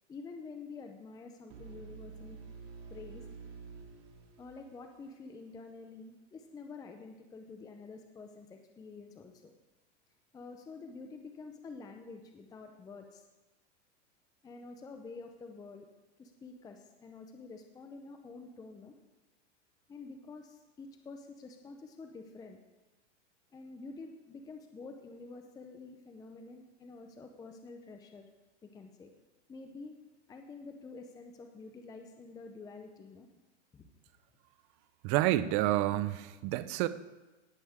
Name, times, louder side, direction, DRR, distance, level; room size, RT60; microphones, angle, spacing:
voice 1, 0.1-2.4 2.9-3.3 4.4-9.5 10.3-13.2 14.4-15.9 16.2-18.9 19.9-22.6 23.5-28.3 28.6-29.1 29.5-30.0 30.3-33.3 33.7-33.9, left 4 dB, 10° left, 5 dB, 0.6 m, -48 dB
sound 1, 1.5-5.4, right 5 dB, 60° right, 3.0 m, -49 dB
voice 2, 35.0-36.9, right 15 dB, 35° right, 14 dB, 0.6 m, -29 dB
18.5 x 7.9 x 3.6 m, 1.1 s
supercardioid pair, 140°, 35 cm